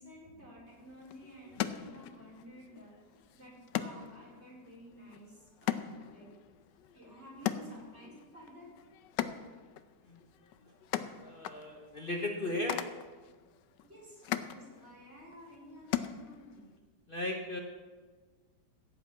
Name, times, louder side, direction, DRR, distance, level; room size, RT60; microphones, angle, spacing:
voice 1, 0.0-6.3 6.9-8.7 13.8-16.7, equal, 35° right, -5 dB, 4.7 m, -52 dB
Cardboard tube hitting walls, 0.7-16.8, left 11 dB, 90° left, 1.3 m, -41 dB
voice 2, 11.2-12.9 17.1-17.6, left 1 dB, 35° left, 2 dB, 1.2 m, -36 dB
16.0 x 5.8 x 8.5 m, 1.4 s
omnidirectional pair, 1.9 m